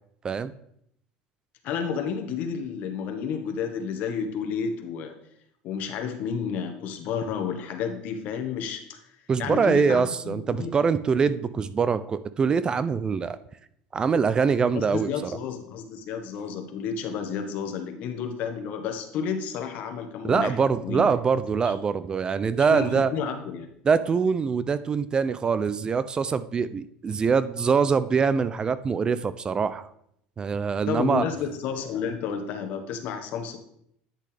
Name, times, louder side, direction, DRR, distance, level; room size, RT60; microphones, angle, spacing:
voice 1, 1.6-5.1 5.6-9.0 9.4-10.7 14.7-20.6 20.8-21.2 22.7-23.7 30.9-33.6, left 6 dB, 60° left, 6 dB, 1.3 m, -31 dB
voice 2, 9.3-13.4 13.9-15.4 20.2-23.1 23.8-29.9 30.4-31.3, right 5 dB, 25° right, 15 dB, 0.4 m, -24 dB
10.0 x 6.4 x 3.4 m, 0.73 s
supercardioid pair, 115°, 3 cm